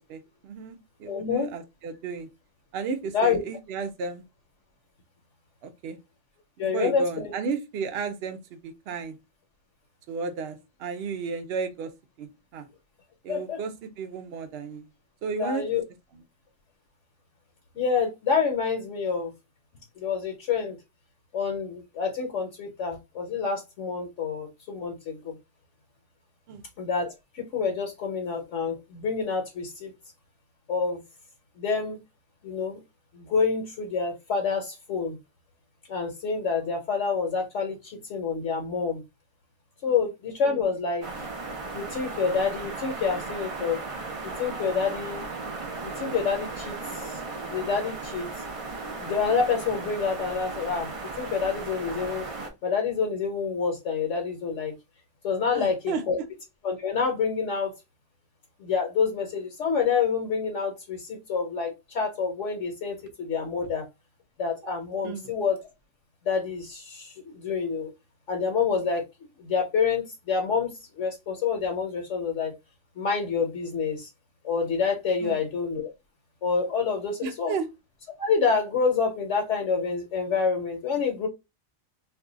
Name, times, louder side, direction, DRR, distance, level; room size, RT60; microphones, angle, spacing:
voice 1, 0.0-2.3 2.7-4.2 5.6-6.0 6.6-9.2 10.1-11.9 12.2-12.7 13.2-13.7 14.0-14.9 15.2-15.6 26.5-26.6 55.5-56.0 65.0-65.3 75.2-75.4 77.2-77.7, right 5 dB, 60° right, 0.7 m, -33 dB
voice 2, 1.1-1.5 3.1-3.4 6.6-7.3 13.3-13.6 15.4-15.8 17.7-19.3 20.0-20.8 21.3-25.3 26.8-29.9 30.7-31.0 31.6-32.0 32.4-32.8 33.1-35.2 35.9-39.0 39.8-41.1 41.7-43.8 44.2-45.2 45.8-47.2 47.5-48.3 49.0-52.3 52.6-54.7 55.2-56.2 56.6-57.7 58.6-63.9 64.4-65.6 66.2-67.9 68.3-69.0 69.4-70.7 71.0-72.5 73.0-74.1 74.4-75.9 76.4-77.5 78.2-81.3, left 5 dB, 65° left, 1.0 m, -27 dB
sound 1, 41.0-52.5, right 3 dB, 45° right, 0.4 m, -36 dB
2.6 x 2.3 x 3.8 m
omnidirectional pair, 1.4 m